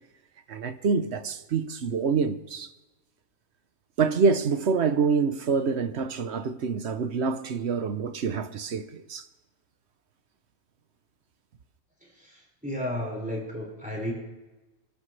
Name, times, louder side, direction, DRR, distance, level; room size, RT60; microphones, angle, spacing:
voice 1, 0.5-2.7 4.0-9.2, right 5 dB, 55° right, 1.0 m, -26 dB
voice 2, 12.0-14.1, left 1 dB, 5° right, 5.4 m, -33 dB
27.0 x 13.0 x 3.3 m
omnidirectional pair, 1.4 m